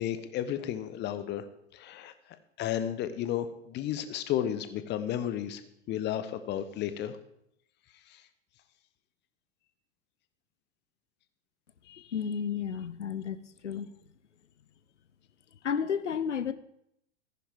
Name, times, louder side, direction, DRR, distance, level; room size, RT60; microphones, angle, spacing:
voice 1, 0.0-1.4 1.7-2.1 2.6-5.6 5.9-7.2 11.9-12.0, left 10 dB, 30° left, 12 dB, 1.0 m, -33 dB
voice 2, 12.1-13.9 15.6-16.5, left 7 dB, 80° left, 14 dB, 0.7 m, -32 dB
14.5 x 10.0 x 3.6 m, 0.76 s
figure-of-eight pair, 90°, 35 cm